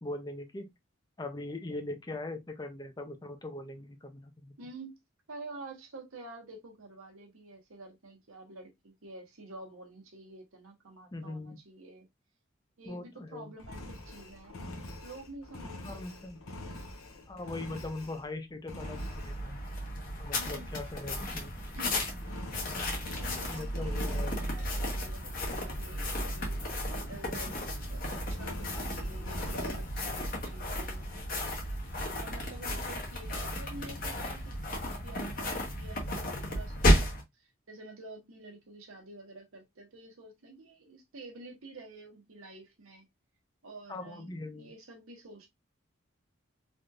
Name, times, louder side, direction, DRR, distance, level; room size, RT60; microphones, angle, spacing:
voice 1, 0.0-0.7 1.2-4.6 11.1-11.6 12.9-13.5 15.8-16.4 17.3-19.6 20.2-21.5 23.5-24.6 43.9-44.7, left 2 dB, 20° left, 0.5 m, -41 dB
voice 2, 4.6-5.0 5.3-12.1 12.8-14.7 15.0-16.0 20.3-20.7 21.7-22.1 22.9-31.1 31.6-37.0 37.3-43.1 43.6-45.5, right 2 dB, 85° right, 1.0 m, -49 dB
Engine, 13.6-18.3 18.7-19.4 22.2-24.5 28.3-29.9, left 1 dB, 85° left, 0.8 m, -44 dB
sound 1, 18.8-37.2, equal, 45° left, 1.0 m, -33 dB
3.5 x 2.7 x 2.4 m
head